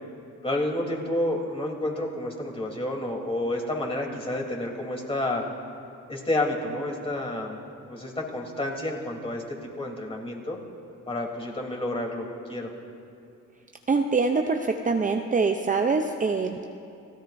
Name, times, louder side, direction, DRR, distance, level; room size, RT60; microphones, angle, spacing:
voice 1, 0.4-5.4 6.1-7.6 7.9-10.6 11.1-12.7, left 1 dB, 20° left, -1 dB, 3.4 m, -30 dB
voice 2, 13.9-14.6 14.8-16.7, right 4 dB, 25° right, 4 dB, 0.7 m, -24 dB
29.0 x 17.0 x 2.7 m, 2.5 s
cardioid pair, 90°, 30 cm